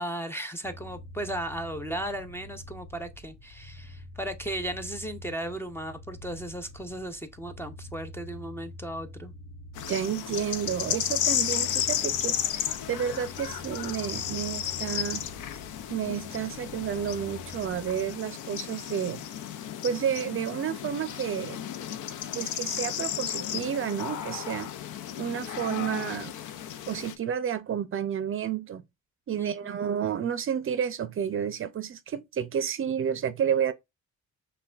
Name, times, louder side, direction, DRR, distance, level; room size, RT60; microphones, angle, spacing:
voice 1, 0.0-9.3 29.4-29.8, right 1 dB, 10° left, 0.5 m, -36 dB
sound 1, 0.6-18.2, left 1 dB, 65° left, 1.2 m, -46 dB
sound 2, 9.8-27.2, left 10 dB, 85° left, 0.5 m, -33 dB
voice 2, 9.9-15.3 15.9-19.2 19.8-21.6 22.3-24.7 25.2-26.3 26.9-28.8 29.3-33.7, right 8 dB, 45° right, 0.5 m, -31 dB
5.6 x 2.3 x 2.3 m
cardioid pair, 90°, 30 cm